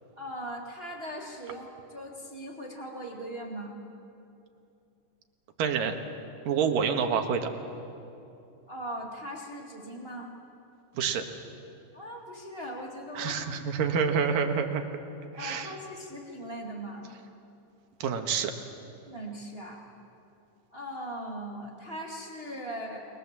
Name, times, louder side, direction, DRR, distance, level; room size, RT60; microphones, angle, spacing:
voice 1, 0.2-3.7 8.7-10.3 11.9-13.4 15.4-17.1 19.0-19.8 20.7-23.1, equal, 20° right, -1 dB, 2.0 m, -39 dB
voice 2, 5.6-5.9 6.5-7.5 10.9-11.2 13.1-14.8 15.4-15.7 18.0-18.5, right 6 dB, 90° right, 5 dB, 3.2 m, -27 dB
29.0 x 22.0 x 7.5 m, 2.7 s
omnidirectional pair, 3.8 m